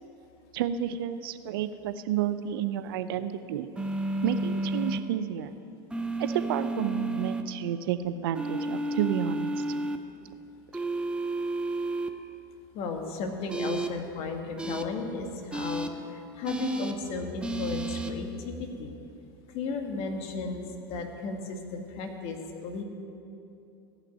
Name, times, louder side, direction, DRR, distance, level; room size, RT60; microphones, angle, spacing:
voice 1, 0.5-3.7 4.2-5.5 6.2-9.6, right 10 dB, 70° right, 12 dB, 0.6 m, -30 dB
sound 1, 3.8-5.0 5.9-7.4 8.4-10.0 10.7-12.1 13.5-13.9 14.6-14.8 15.5-15.9 16.5-16.9 17.4-18.1, right 2 dB, 10° right, 0.9 m, -31 dB
voice 2, 12.7-18.9 19.5-22.8, left 4 dB, 55° left, 4 dB, 1.8 m, -35 dB
15.0 x 5.9 x 9.2 m, 2.8 s
hypercardioid pair, 95°, 12 cm